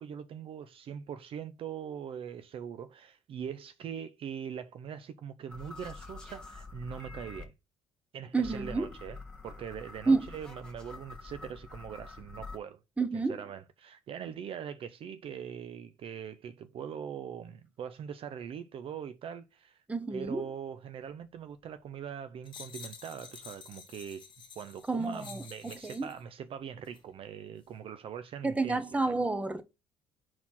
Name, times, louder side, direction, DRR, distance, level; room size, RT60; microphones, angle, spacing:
voice 1, 0.0-7.5 8.1-9.2 9.4-12.8 13.1-19.8 20.1-24.3 24.6-28.8, right 8 dB, 55° right, 0.5 m, -42 dB
sound 1, 5.5-7.4 8.4-12.6, left 3 dB, 10° left, 1.3 m, -46 dB
voice 2, 8.3-8.9 10.1-10.3 13.0-13.4 19.9-20.4 24.9-25.4 25.8-26.1 28.4-29.6, right 3 dB, 10° right, 0.9 m, -29 dB
sound 2, 22.4-26.2 26.8-27.0, left 6 dB, 40° left, 1.3 m, -50 dB
4.3 x 4.3 x 5.6 m
supercardioid pair, 75°, 12 cm